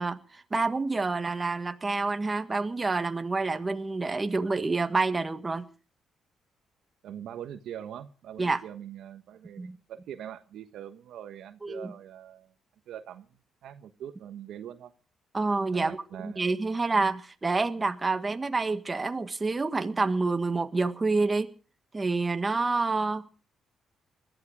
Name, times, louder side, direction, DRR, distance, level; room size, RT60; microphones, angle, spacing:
voice 1, 0.0-5.7 8.4-8.6 9.6-9.8 11.6-11.9 15.3-16.0 16.2-21.5 21.9-23.3, right 3 dB, 25° right, 1.6 m, -28 dB
voice 2, 7.0-12.5 12.9-14.9 15.7-16.6, right 10 dB, 75° right, 1.2 m, -43 dB
21.0 x 13.0 x 4.9 m
cardioid pair, 90°, 0 cm